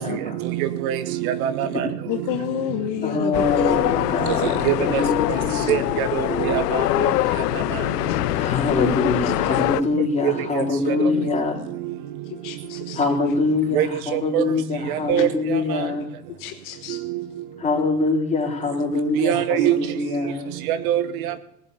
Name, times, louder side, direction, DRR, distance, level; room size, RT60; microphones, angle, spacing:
voice 1, 0.0-2.4 3.2-3.3 4.0-7.9 9.0-9.1 9.7-9.9 10.2-12.2 12.7-12.9 13.7-14.5 14.8-15.9 16.9-17.4 19.1-20.0 20.2-21.4, right 11 dB, 60° right, 13 dB, 1.1 m, -26 dB
voice 2, 2.1-3.8 5.6-5.7 9.2-9.3 12.3-13.0 15.2-15.3 16.4-17.0, left 12 dB, 40° left, 7 dB, 1.1 m, -30 dB
voice 3, 3.0-5.7 8.4-11.6 13.0-16.1 17.6-20.5, left 3 dB, 15° left, -2 dB, 4.2 m, -24 dB
sound 1, 3.3-9.8, left 16 dB, 75° left, 0.7 m, -23 dB
18.0 x 7.5 x 6.8 m, 0.78 s
hypercardioid pair, 110°, 48 cm